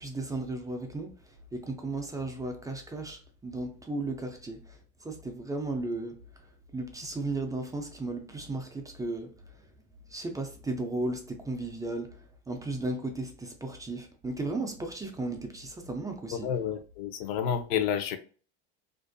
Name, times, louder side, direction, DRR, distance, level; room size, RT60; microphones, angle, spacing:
voice 1, 0.0-6.2 6.7-9.3 10.1-16.5, right 2 dB, 10° right, 0.4 m, -35 dB
voice 2, 16.3-18.2, left 8 dB, 75° left, 0.5 m, -30 dB
2.5 x 2.4 x 2.2 m
supercardioid pair, 110°, 30 cm